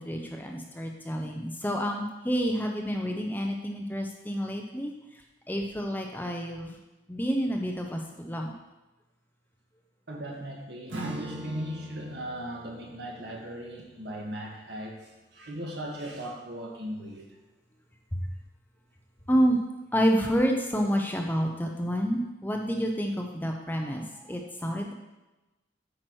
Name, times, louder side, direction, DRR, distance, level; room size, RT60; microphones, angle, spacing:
voice 1, 0.0-4.9 5.5-6.7 7.1-8.5 18.1-18.2 19.3-19.6 19.9-24.9, equal, 10° left, 2 dB, 0.7 m, -29 dB
voice 2, 10.1-17.3, right 1 dB, 60° right, -1 dB, 1.8 m, -38 dB
Acoustic guitar / Strum, 10.9-16.1, right 1 dB, 80° right, 2.0 m, -44 dB
8.8 x 4.8 x 6.2 m, 1.0 s
head